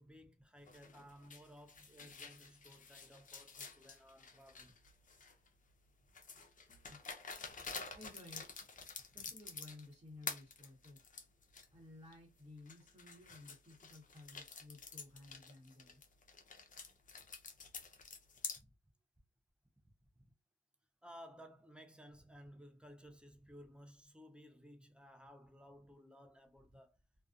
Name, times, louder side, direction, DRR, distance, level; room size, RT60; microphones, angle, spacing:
voice 1, 0.0-4.7 18.5-18.7 20.2-20.3 21.0-27.0, equal, 5° right, 0.6 m, -58 dB
sound 1, 0.7-5.5 6.1-9.9 10.2-11.7 12.1-12.2 12.7-18.6, left 5 dB, 40° left, 0.6 m, -49 dB
voice 2, 7.9-8.6 9.1-11.0 11.7-16.0, left 2 dB, 25° right, 1.2 m, -56 dB
2.4 x 2.3 x 2.4 m
cardioid pair, 75°, 21 cm